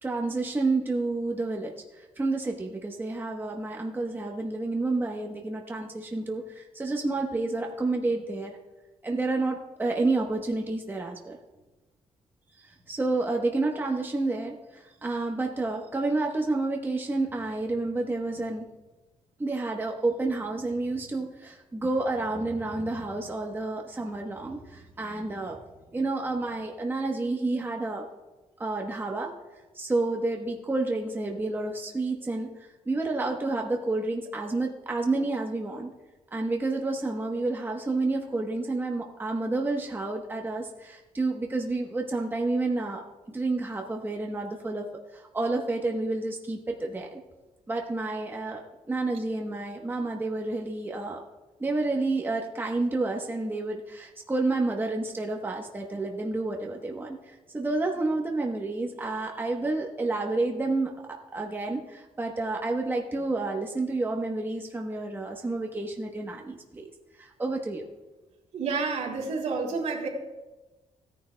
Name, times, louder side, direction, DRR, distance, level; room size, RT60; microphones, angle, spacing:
voice 1, 0.0-8.6 9.0-11.4 12.6-18.7 19.4-25.6 25.9-28.1 28.6-29.3 29.7-35.9 36.3-44.9 45.1-47.2 47.7-48.6 48.9-51.2 51.6-66.9 67.2-67.9, right 2 dB, 15° right, 1 dB, 1.0 m, -30 dB
voice 2, 68.5-70.1, right 4 dB, 70° right, -2 dB, 3.1 m, -29 dB
17.0 x 10.0 x 2.2 m, 1.1 s
cardioid pair, 120°, 12 cm